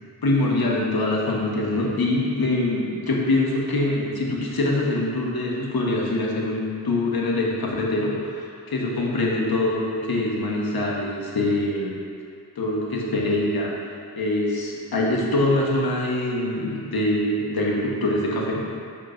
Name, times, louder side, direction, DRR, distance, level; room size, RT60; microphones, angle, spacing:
voice 1, 0.2-11.9 12.6-13.8 14.2-18.7, left 2 dB, 65° left, -3 dB, 1.1 m, -24 dB
6.7 x 5.8 x 2.5 m, 2.3 s
wide cardioid pair, 95°, 40 cm